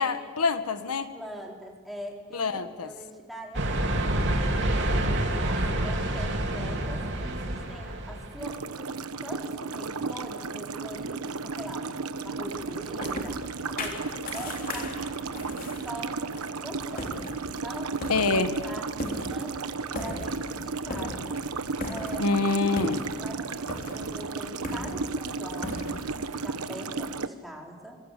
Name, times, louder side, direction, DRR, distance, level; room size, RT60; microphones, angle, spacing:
voice 1, 0.0-1.1 2.3-2.9 18.1-18.5 22.2-23.1, left 3 dB, 90° left, 10 dB, 1.5 m, -26 dB
voice 2, 1.1-4.2 4.8-8.9 9.2-11.9 12.2-16.2 16.6-18.3 18.6-19.7 20.0-21.4 21.9-22.3 23.2-28.0, equal, ahead, -1 dB, 4.2 m, -43 dB
sound 1, 3.5-8.4, right 1 dB, 50° right, 3.5 m, -27 dB
sound 2, 8.4-27.3, right 4 dB, 90° right, 1.2 m, -34 dB
sound 3, 12.5-26.3, left 1 dB, 40° left, 3.5 m, -39 dB
26.0 x 25.5 x 8.5 m, 1.5 s
head